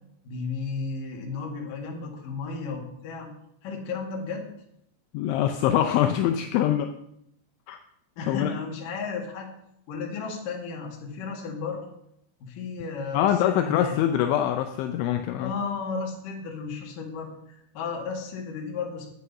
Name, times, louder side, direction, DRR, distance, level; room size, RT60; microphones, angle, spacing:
voice 1, 0.2-3.3 3.6-4.5 8.2-9.5 9.9-11.9 12.4-14.1 15.4-19.1, left 4 dB, 50° left, -1 dB, 3.3 m, -34 dB
voice 2, 5.1-6.9 7.7-7.8 8.3-8.5 13.1-15.5, left 11 dB, 80° left, 5 dB, 2.9 m, -24 dB
11.5 x 9.3 x 5.5 m, 0.75 s
omnidirectional pair, 5.7 m